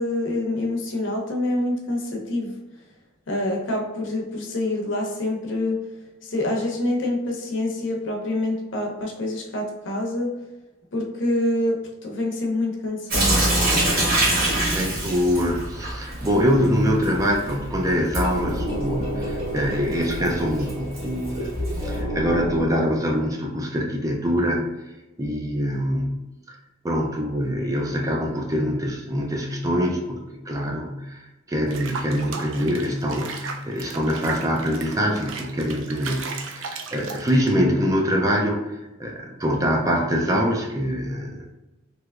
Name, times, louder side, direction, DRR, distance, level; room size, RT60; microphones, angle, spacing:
voice 1, 0.0-2.5 3.3-5.8 6.2-10.3 10.9-13.5, left 1 dB, 70° left, 0 dB, 0.7 m, -26 dB
Sink (filling or washing) / Drip, 13.1-22.0, right 1 dB, 50° right, 1.0 m, -26 dB
voice 2, 14.7-21.5 21.8-24.7 25.2-26.1 26.8-31.2 31.5-38.6 39.0-41.5, equal, 15° right, 0 dB, 0.4 m, -24 dB
sound 1, 17.2-22.6, equal, 20° left, 0.7 m, -31 dB
Water / Bathtub (filling or washing), 31.7-37.6, right 4 dB, 85° right, 0.4 m, -36 dB
3.2 x 2.9 x 2.3 m, 1.0 s
head